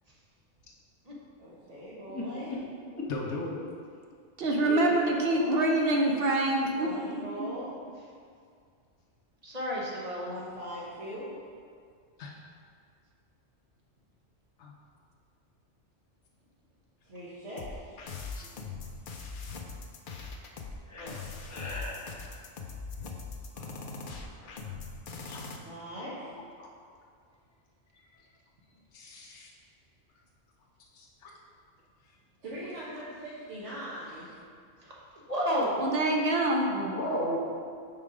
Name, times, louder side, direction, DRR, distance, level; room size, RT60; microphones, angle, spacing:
voice 1, 1.4-2.6 4.6-5.6 6.8-7.7 10.2-11.3 17.0-17.9 25.6-26.4 32.4-34.3, equal, 75° right, -11 dB, 1.6 m, -41 dB
voice 2, 2.1-2.6 2.9-3.1 4.7-4.8 20.9-21.2 21.5-22.2 36.7-37.4, left 1 dB, 15° left, -6 dB, 1.0 m, -35 dB
voice 3, 3.1-3.5 6.4-6.5 12.2-12.3 14.6-14.7 18.3-18.6 23.6-23.7 24.1-24.2 25.2-25.4 26.6-26.7 28.9-29.5 30.9-31.3, left 2 dB, 80° left, -2 dB, 1.1 m, -40 dB
voice 4, 4.4-7.5 35.8-36.7, right 1 dB, 60° right, 0 dB, 0.8 m, -26 dB
voice 5, 9.4-10.4 21.0-21.2 34.8-35.9, equal, 35° right, -4 dB, 1.1 m, -32 dB
sound 1, 17.6-25.6, left 4 dB, 55° left, 0.7 m, -41 dB
5.6 x 4.5 x 4.9 m, 2.2 s
omnidirectional pair, 1.2 m